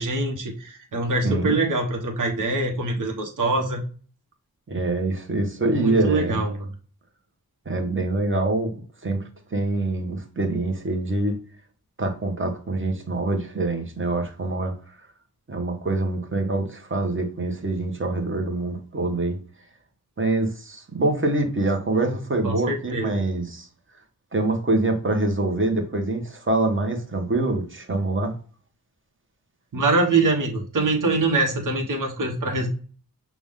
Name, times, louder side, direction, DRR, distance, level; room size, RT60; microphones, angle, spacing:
voice 1, 0.0-3.8 5.7-6.7 22.4-23.1 29.7-32.7, right 3 dB, 55° right, 0 dB, 1.3 m, -24 dB
voice 2, 1.2-1.6 4.7-6.4 7.6-8.7 9.0-11.4 12.0-14.7 15.5-19.4 20.2-23.7 24.3-28.3, right 2 dB, 35° right, 4 dB, 1.2 m, -25 dB
5.9 x 2.4 x 3.6 m, 0.40 s
wide cardioid pair, 85°, 36 cm